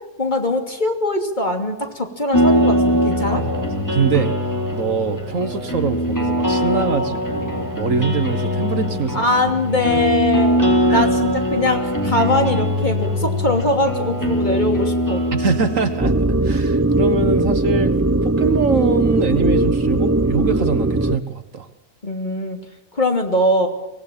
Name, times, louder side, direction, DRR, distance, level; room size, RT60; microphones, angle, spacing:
voice 1, 0.2-3.4 9.1-15.2 22.0-22.6 22.9-23.7, left 1 dB, 30° left, 4 dB, 3.0 m, -21 dB
sound 1, 2.3-16.0, equal, 10° left, 3.7 m, -21 dB
voice 2, 3.3-4.3 4.7-9.6 10.9-11.1 15.3-16.2 16.4-18.0 18.2-21.7, right 5 dB, 55° right, 10 dB, 1.6 m, -23 dB
sound 2, 16.0-21.2, right 2 dB, 20° right, 0.3 m, -19 dB
24.5 x 18.0 x 9.0 m, 0.99 s
omnidirectional pair, 1.7 m